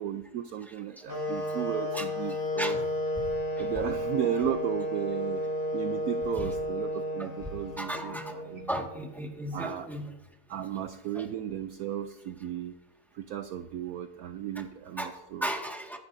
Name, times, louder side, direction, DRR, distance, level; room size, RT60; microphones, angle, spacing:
voice 1, 0.0-2.7 3.6-5.4 5.7-8.7 9.5-9.9 10.5-12.7 13.1-15.5, right 10 dB, 70° right, 9 dB, 0.9 m, -35 dB
voice 2, 0.7-1.0 1.9-2.1 2.6-2.8 3.6-3.7 6.4-6.5 7.2-7.3 7.8-8.3 8.7-10.1 11.1-11.3 15.0-16.0, right 1 dB, ahead, 1 dB, 1.6 m, -35 dB
sound 1, 1.1-9.1, left 1 dB, 65° left, 5.2 m, -32 dB
23.5 x 10.0 x 2.7 m, 0.94 s
omnidirectional pair, 1.9 m